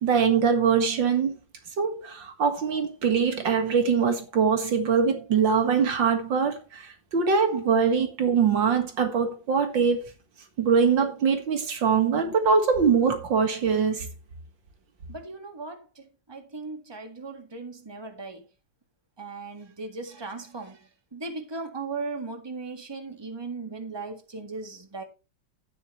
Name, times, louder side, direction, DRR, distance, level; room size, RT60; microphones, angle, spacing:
voice 1, 0.0-1.3 1.8-6.8 7.1-10.0 10.6-14.1, right 6 dB, 85° right, 2.5 m, -23 dB
voice 2, 15.1-15.9 16.3-18.4 19.2-20.8 21.1-25.0, right 3 dB, 15° right, 1.7 m, -37 dB
11.0 x 10.0 x 3.1 m
omnidirectional pair, 2.0 m